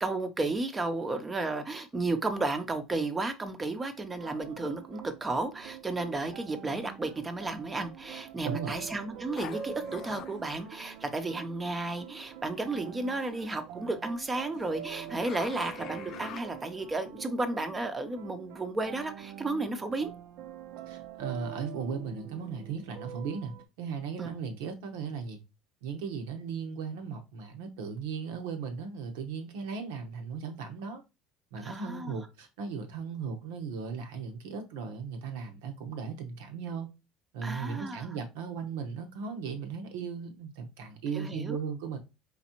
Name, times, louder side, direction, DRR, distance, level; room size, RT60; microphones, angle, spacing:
voice 1, 0.0-20.1 24.2-24.3 31.6-32.2 37.4-38.1 41.1-41.6, right 2 dB, 20° right, 0.6 m, -33 dB
sound 1, 4.2-23.6, right 9 dB, 70° right, 0.6 m, -45 dB
voice 2, 8.4-8.8 20.9-25.4 25.8-31.0 31.5-36.9 37.3-42.0, right 6 dB, 85° right, 1.0 m, -37 dB
sound 2, 9.3-11.5 12.2-13.4 13.8-16.9, left 10 dB, 50° left, 0.4 m, -46 dB
4.1 x 3.3 x 2.9 m
supercardioid pair, 125°, 0 cm